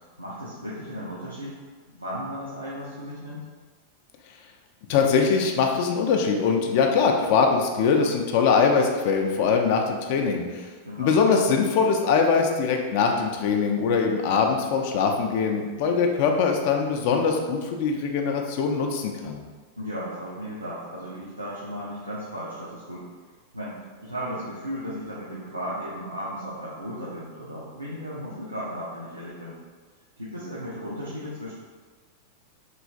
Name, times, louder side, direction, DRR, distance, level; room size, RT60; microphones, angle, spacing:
voice 1, 0.2-1.5 1.9-3.5 10.8-11.2 19.8-23.1 23.5-29.6 30.2-31.5, equal, 85° right, -8 dB, 0.5 m, -35 dB
voice 2, 4.9-10.7 11.0-19.4, left 5 dB, 50° left, 3 dB, 0.3 m, -22 dB
3.0 x 2.4 x 2.6 m, 1.4 s
figure-of-eight pair, 90°, 0 cm